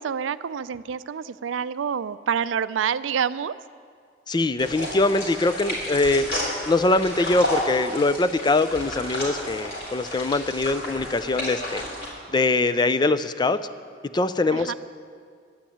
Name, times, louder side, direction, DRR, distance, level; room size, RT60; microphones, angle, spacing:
voice 1, 0.0-3.5 14.5-14.7, right 7 dB, 85° right, 15 dB, 0.4 m, -27 dB
voice 2, 4.3-6.3 6.7-11.8 12.3-13.6 14.1-14.7, left 2 dB, 25° left, 12 dB, 0.4 m, -22 dB
sound 1, 4.6-12.1, equal, 55° left, 4.1 m, -32 dB
11.5 x 9.1 x 8.6 m, 2.1 s
head